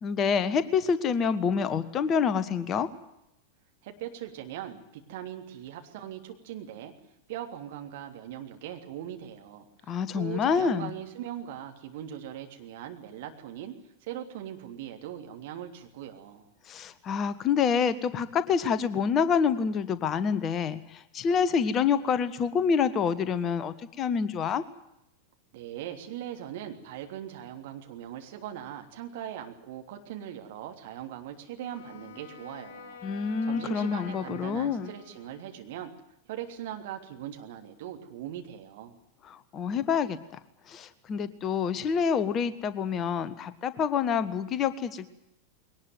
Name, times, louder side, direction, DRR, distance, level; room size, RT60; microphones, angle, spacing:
voice 1, 0.0-2.9 9.9-10.9 16.7-24.6 33.0-34.9 39.2-40.2 40.7-45.1, left 6 dB, 30° left, 14 dB, 1.4 m, -27 dB
voice 2, 3.8-6.9 7.3-13.8 14.0-16.4 25.5-35.9 36.3-39.0, right 11 dB, 50° right, 4 dB, 3.3 m, -40 dB
Wind instrument woodwind instrument, 31.5-35.7, left 6 dB, 50° left, 3.7 m, -47 dB
21.5 x 19.0 x 9.3 m, 0.83 s
figure-of-eight pair, 90°, 0 cm